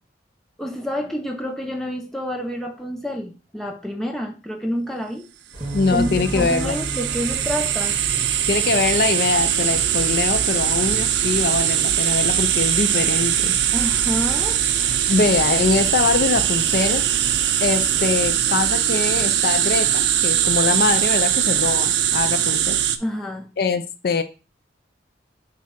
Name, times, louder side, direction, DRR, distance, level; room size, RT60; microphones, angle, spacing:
voice 1, 0.6-5.3 5.9-8.0 13.7-14.6 23.0-23.5, equal, ahead, 1 dB, 0.7 m, -28 dB
sound 1, 5.5-18.3, right 1 dB, 25° left, 1.2 m, -37 dB
Bass guitar, 5.6-10.0 10.7-11.8, right 2 dB, 25° right, 1.2 m, -36 dB
voice 2, 5.7-6.8 8.5-13.5 15.1-17.0 17.6-22.8 23.6-24.2, left 4 dB, 55° left, 9 dB, 0.5 m, -23 dB
sound 2, 5.7-23.0, right 10 dB, 70° right, 0.5 m, -21 dB
7.3 x 2.4 x 5.7 m, 0.32 s
head